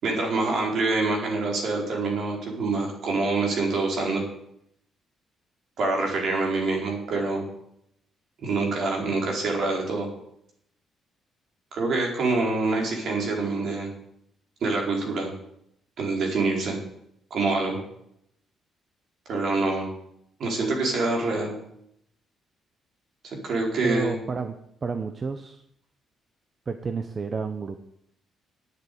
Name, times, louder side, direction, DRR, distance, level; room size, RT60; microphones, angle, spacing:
voice 1, 0.0-4.2 5.8-7.4 8.4-10.1 11.7-13.9 14.6-15.3 16.0-16.8 17.3-17.8 19.3-19.9 20.4-21.6 23.2-24.1, right 3 dB, 65° right, 0 dB, 4.3 m, -26 dB
voice 2, 23.8-24.5 24.8-25.6 26.7-27.8, right 4 dB, 35° right, 8 dB, 0.9 m, -30 dB
9.5 x 8.2 x 9.3 m, 0.76 s
cardioid pair, 90°, 0 cm